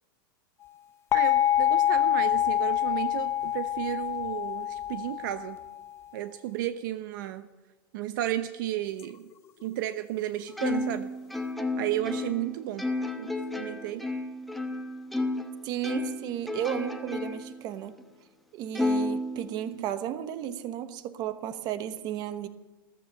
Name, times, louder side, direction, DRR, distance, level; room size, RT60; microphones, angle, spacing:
sound 1, 1.1-5.8, left 11 dB, 20° left, 0.5 m, -26 dB
voice 1, 1.1-5.6 6.1-7.5 7.9-9.3 9.6-11.1 11.8-12.8 13.2-13.3 13.6-14.1 19.6-19.8, right 13 dB, 55° right, 11 dB, 0.8 m, -33 dB
Plucked string instrument, 10.6-15.5 15.8-17.6 18.0-18.1 18.8-19.9, left 2 dB, ahead, 1.1 m, -32 dB
voice 2, 15.6-18.0 18.5-22.5, right 11 dB, 35° right, 11 dB, 1.1 m, -34 dB
14.0 x 14.0 x 7.1 m, 1.1 s
supercardioid pair, 150°, 12 cm